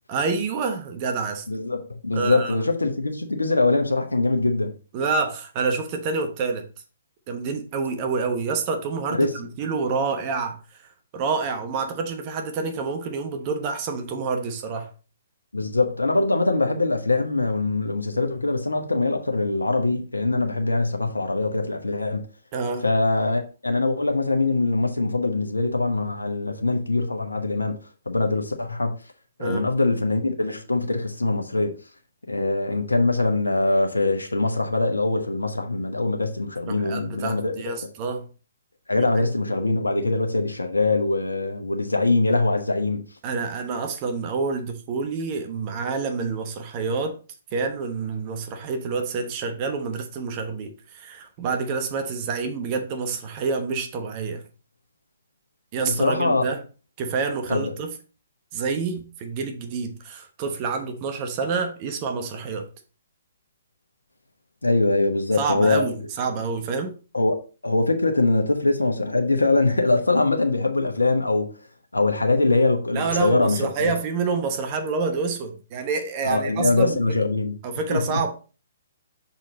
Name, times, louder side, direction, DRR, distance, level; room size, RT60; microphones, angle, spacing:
voice 1, 0.1-1.4 2.1-2.7 4.9-6.7 7.3-10.6 11.1-14.9 22.5-22.9 29.4-29.7 36.7-38.3 39.0-39.1 43.2-47.2 47.5-54.4 55.7-56.6 57.0-57.9 58.5-62.7 65.3-66.9 72.9-77.2 77.6-78.3, right 4 dB, 35° right, 1.0 m, -28 dB
voice 2, 1.5-4.7 9.1-9.3 15.5-22.2 22.8-27.8 28.1-29.0 29.4-31.7 32.3-37.5 38.9-43.0 55.8-56.4 57.5-57.6 64.6-65.9 67.1-67.4 67.6-71.5 71.9-73.9 76.2-77.5 77.9-78.2, left 2 dB, 85° left, 1.0 m, -23 dB
6.1 x 4.2 x 4.0 m
figure-of-eight pair, 130°, 0 cm